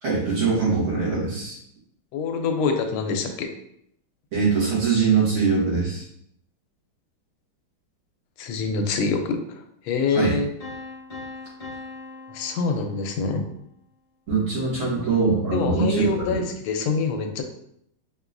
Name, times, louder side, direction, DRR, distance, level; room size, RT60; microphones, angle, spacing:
voice 1, 0.0-1.6 4.3-6.0 10.1-10.4 14.3-16.3, right 4 dB, 75° right, -8 dB, 2.6 m, -22 dB
voice 2, 2.1-3.5 8.4-10.5 12.3-13.5 15.5-17.4, left 4 dB, 85° left, 5 dB, 1.4 m, -25 dB
sound 1, 10.6-13.5, left 3 dB, 25° left, 0.9 m, -40 dB
5.0 x 2.9 x 2.5 m, 0.73 s
omnidirectional pair, 2.3 m